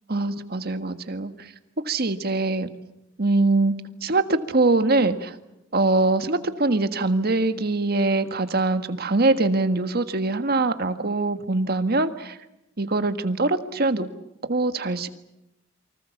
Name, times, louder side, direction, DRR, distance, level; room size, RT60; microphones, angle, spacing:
voice 1, 0.1-1.5 1.8-2.7 3.2-3.7 4.0-5.4 5.7-12.4 12.8-14.1 14.5-15.1, right 2 dB, 55° right, 9 dB, 1.6 m, -23 dB
28.5 x 24.5 x 7.2 m, 0.89 s
head